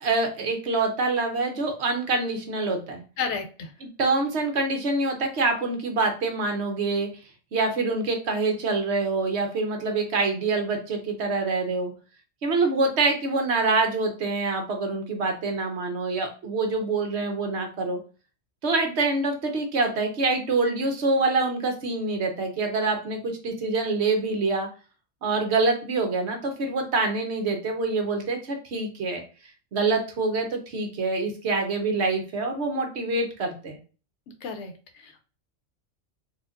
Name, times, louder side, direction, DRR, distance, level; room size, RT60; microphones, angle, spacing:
voice 1, 0.0-3.0 4.0-7.1 7.5-11.9 12.4-18.0 18.6-24.7 25.2-29.2 29.7-33.8, right 3 dB, 65° right, 4 dB, 1.0 m, -25 dB
voice 2, 3.2-3.7 34.4-35.2, left 5 dB, 70° left, 6 dB, 0.9 m, -32 dB
4.3 x 2.4 x 2.4 m, 0.36 s
omnidirectional pair, 1.3 m